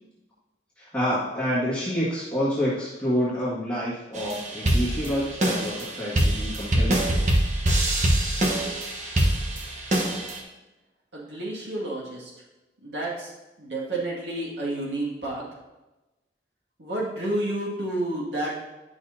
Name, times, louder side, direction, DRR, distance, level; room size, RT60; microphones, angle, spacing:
voice 1, 0.8-7.2, equal, 5° left, -10 dB, 1.8 m, -28 dB
sound 1, 4.1-10.4, right 1 dB, 40° right, 1.1 m, -24 dB
voice 2, 11.1-12.3 12.8-13.3 13.6-15.4 16.8-18.5, right 1 dB, 85° right, -4 dB, 2.1 m, -30 dB
10.5 x 6.3 x 2.7 m, 1.1 s
head